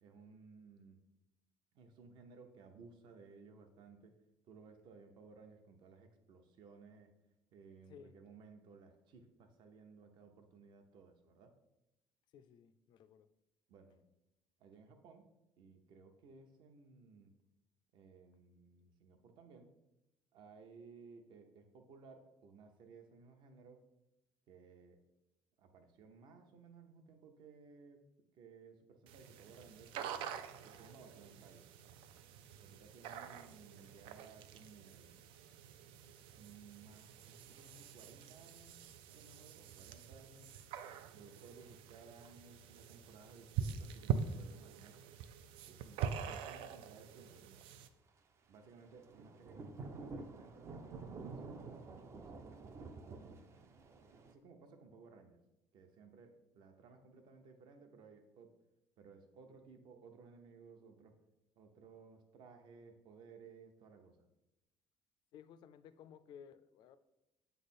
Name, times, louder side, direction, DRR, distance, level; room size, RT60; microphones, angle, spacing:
voice 1, 0.0-1.0 1.7-4.1 4.5-7.1 7.5-11.5 13.7-14.0 14.6-15.3 15.6-17.3 17.9-19.7 20.3-23.8 24.5-25.0 25.6-28.1 28.3-29.9 30.6-31.7 32.6-35.1 36.3-38.8 39.1-40.6 41.1-45.0 45.7-47.7 48.5-52.4 53.2-53.5 54.3-55.4 55.7-58.5 59.0-61.1 61.6-64.3, right 4 dB, 60° right, 6 dB, 0.8 m, -59 dB
voice 2, 12.3-13.3 65.3-67.0, left 8 dB, 55° left, 13 dB, 0.4 m, -57 dB
sound 1, 29.1-47.9, right 8 dB, 85° right, 0.5 m, -45 dB
Thunder / Rain, 48.8-54.3, right 3 dB, 30° right, 0.4 m, -49 dB
8.2 x 3.4 x 4.2 m, 0.93 s
cardioid pair, 165°, 9 cm